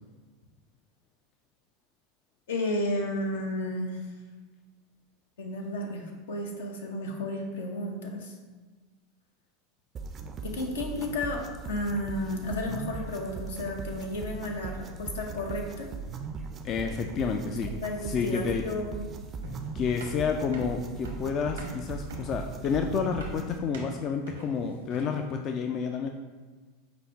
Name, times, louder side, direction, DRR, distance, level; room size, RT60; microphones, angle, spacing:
voice 1, 2.5-4.0 5.4-8.3 10.4-15.9 17.6-19.1, left 1 dB, 80° left, 1 dB, 0.8 m, -33 dB
sound 1, 10.0-23.6, right 5 dB, 35° right, 0.4 m, -39 dB
voice 2, 16.6-17.7 18.1-18.6 19.7-26.1, left 6 dB, 40° left, 4 dB, 0.3 m, -30 dB
sound 2, 19.4-25.3, right 3 dB, 90° right, 0.9 m, -43 dB
5.0 x 2.0 x 4.5 m, 1.3 s
hypercardioid pair, 95°, 0 cm